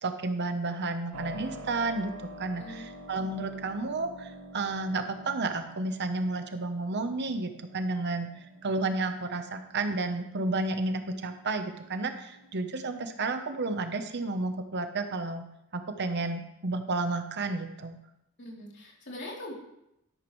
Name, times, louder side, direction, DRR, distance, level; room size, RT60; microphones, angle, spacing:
voice 1, 0.0-2.1 2.4-8.3 8.6-15.4 15.7-18.0, right 3 dB, 55° right, 7 dB, 0.9 m, -31 dB
Keyboard (musical), 1.1-13.9, right 1 dB, 80° right, 1.1 m, -48 dB
voice 2, 2.5-2.9 18.4-19.5, left 1 dB, 55° left, -3 dB, 3.2 m, -42 dB
12.0 x 11.5 x 3.2 m, 0.83 s
head